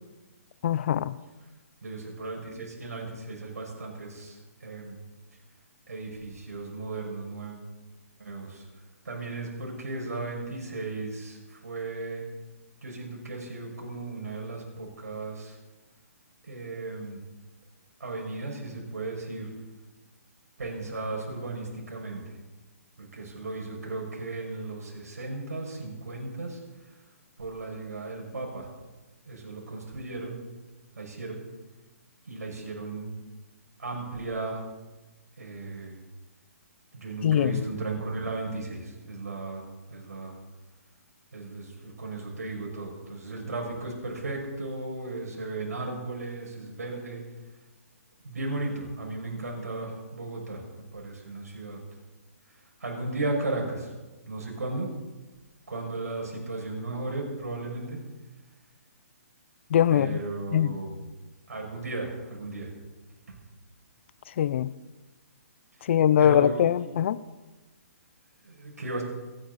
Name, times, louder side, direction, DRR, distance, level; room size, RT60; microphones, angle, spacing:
voice 1, 0.6-1.2 37.2-37.6 59.7-60.2 60.5-60.8 64.4-64.7 65.9-67.2, left 10 dB, 50° left, 0.6 m, -22 dB
voice 2, 1.8-5.0 5.9-7.6 8.2-8.6 9.0-12.2 12.8-15.6 16.4-17.2 18.0-19.5 20.6-22.2 23.0-26.6 27.4-28.7 29.3-30.4 31.0-31.4 32.2-33.1 33.8-34.6 35.4-35.9 36.9-40.4 41.3-47.2 48.2-50.6 50.9-51.8 52.8-53.9 54.3-54.9 55.7-58.0 59.9-61.0 61.5-62.7 65.8-65.9 66.2-66.9 68.4-69.0, right 2 dB, 80° right, 6.2 m, -35 dB
29.0 x 10.0 x 4.2 m
hypercardioid pair, 140°, 8 cm